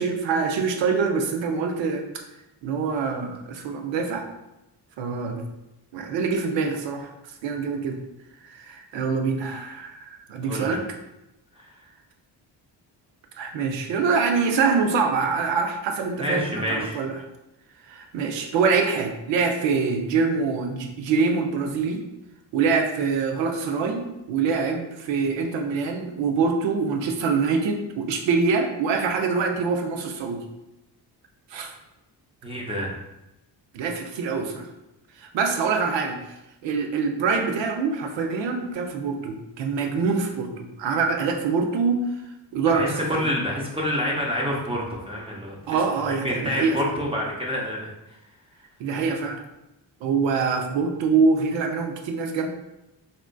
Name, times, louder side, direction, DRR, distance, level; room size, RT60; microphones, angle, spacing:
voice 1, 0.0-2.0 2.6-4.3 5.0-5.4 5.9-7.0 7.4-8.0 8.4-10.8 13.4-17.2 17.9-22.0 22.5-30.5 31.5-31.7 33.7-34.7 35.2-36.2 36.6-42.0 42.5-43.3 45.7-46.8 48.8-49.4 50.0-52.5, right 5 dB, 85° right, 3 dB, 0.6 m, -25 dB
voice 2, 10.4-10.8 11.6-11.7 16.2-17.0 32.4-32.9 42.7-45.6 46.2-47.9, equal, 15° right, -3 dB, 0.6 m, -27 dB
3.6 x 2.5 x 2.2 m, 0.92 s
cardioid pair, 85°, 43 cm